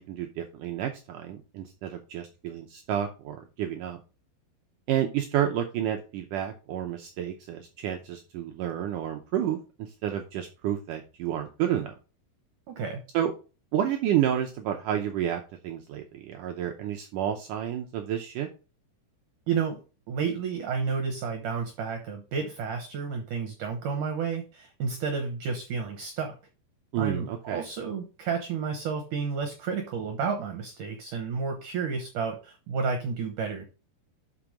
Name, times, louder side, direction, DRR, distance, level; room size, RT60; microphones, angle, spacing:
voice 1, 0.0-4.0 4.9-11.9 13.1-13.3 13.7-18.5 26.9-27.6, right 10 dB, 85° right, 3 dB, 1.8 m, -30 dB
voice 2, 12.7-13.1 19.5-26.3 27.0-33.6, right 5 dB, 70° right, 4 dB, 2.1 m, -31 dB
6.0 x 5.9 x 5.0 m, 0.33 s
omnidirectional pair, 4.7 m